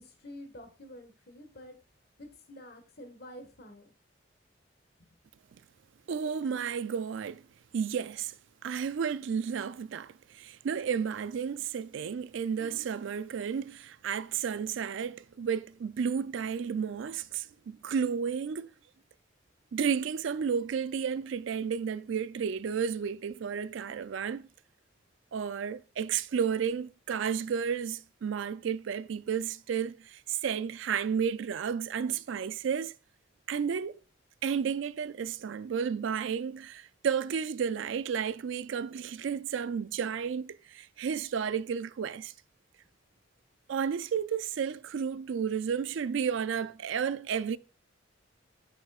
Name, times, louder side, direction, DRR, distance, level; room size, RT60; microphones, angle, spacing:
voice 1, 0.0-1.7 2.2-3.9 5.0-5.1, left 1 dB, 50° left, 1.5 m, -48 dB
voice 2, 6.1-7.5 7.7-8.3 8.6-18.7 19.7-24.5 25.3-32.9 33.5-34.0 34.4-42.3 43.7-47.6, right 7 dB, 70° right, 0.4 m, -32 dB
9.5 x 6.3 x 2.4 m
head